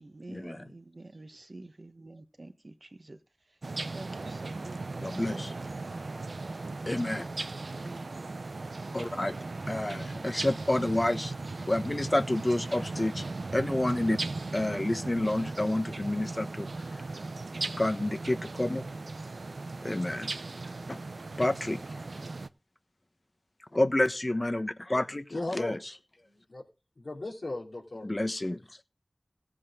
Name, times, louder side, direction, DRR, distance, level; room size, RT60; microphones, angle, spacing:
voice 1, 0.0-3.2 3.9-5.2 7.5-8.1 9.3-9.8, right 2 dB, 55° right, 1.4 m, -48 dB
sound 1, 3.6-22.5, right 3 dB, 85° right, 0.6 m, -37 dB
voice 2, 5.0-5.5 6.9-7.3 8.9-9.3 9.7-11.3 11.7-13.2 13.5-14.2 14.5-16.7 17.7-18.8 19.8-20.3 20.9-21.0 21.4-22.0 23.7-25.3 25.5-25.8 28.0-28.6, left 1 dB, 35° left, 1.1 m, -29 dB
voice 3, 25.3-25.8 26.2-26.6 27.0-28.1, left 2 dB, 80° left, 3.0 m, -36 dB
17.0 x 7.6 x 3.7 m
wide cardioid pair, 60°, 0 cm